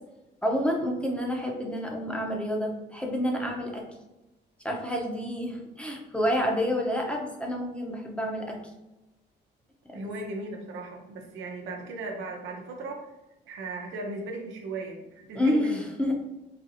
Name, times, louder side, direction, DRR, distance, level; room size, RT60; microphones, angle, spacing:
voice 1, 0.4-3.8 4.6-8.6 9.9-10.2 15.3-16.1, equal, 5° left, 0 dB, 0.8 m, -29 dB
voice 2, 9.9-13.1 13.5-16.1, right 2 dB, 90° right, 1 dB, 0.8 m, -37 dB
4.0 x 2.6 x 2.7 m, 0.99 s
cardioid pair, 95°, 19 cm